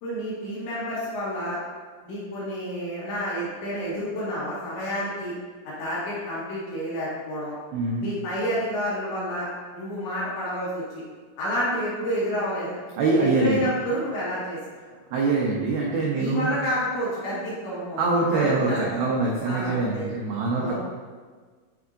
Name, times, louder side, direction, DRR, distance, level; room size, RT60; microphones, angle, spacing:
voice 1, 0.0-1.6 2.0-5.3 5.6-7.6 8.0-11.0 11.4-12.8 13.2-14.6 15.1-15.2 16.2-19.1 19.5-20.1 20.6-20.8, equal, 70° left, -8 dB, 3.9 m, -29 dB
voice 2, 7.7-8.0 13.0-13.7 15.1-16.5 18.0-20.8, right 3 dB, 85° right, -3 dB, 2.1 m, -24 dB
9.7 x 4.5 x 2.6 m, 1.5 s
omnidirectional pair, 5.4 m